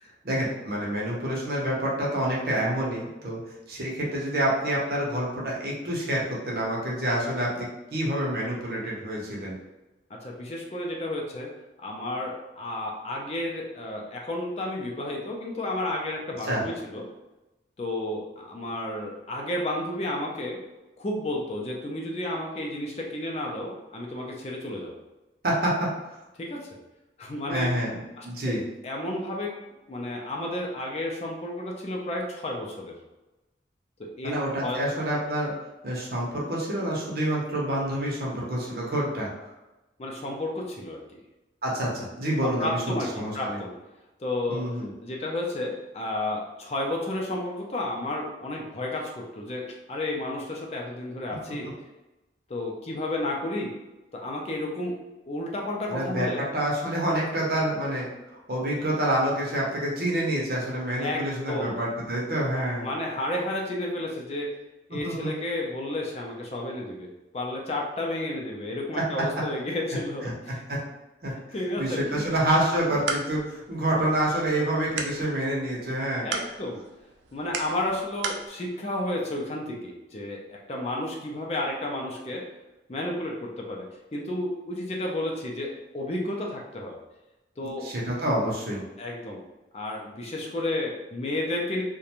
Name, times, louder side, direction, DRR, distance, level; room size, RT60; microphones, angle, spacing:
voice 1, 0.2-3.4 3.7-9.6 16.4-16.6 25.4-25.9 27.5-28.6 34.2-35.5 35.8-39.3 41.6-43.6 44.5-44.9 55.9-58.1 58.5-62.9 64.9-65.3 68.9-69.0 70.2-70.8 71.2-71.3 71.8-76.3 87.8-88.8, right 1 dB, 55° right, -4 dB, 0.7 m, -27 dB
voice 2, 10.2-11.5 11.8-17.0 17.8-20.6 21.0-24.9 26.4-26.7 27.2-27.7 28.2-28.5 28.8-29.6 29.9-32.9 34.2-34.3 34.6-34.8 40.0-41.2 42.4-43.7 44.2-44.6 45.0-51.7 52.5-53.7 54.1-55.0 55.3-56.4 61.0-61.8 62.8-64.5 64.9-67.1 67.3-70.6 71.5-72.2 76.2-76.8 77.3-82.4 82.9-87.0 87.6-87.9 89.0-89.4 89.7-91.8, left 1 dB, 35° left, -1 dB, 0.4 m, -32 dB
sound 1, 72.7-78.5, right 5 dB, 80° right, 0.4 m, -37 dB
2.5 x 2.1 x 2.9 m, 1.0 s
head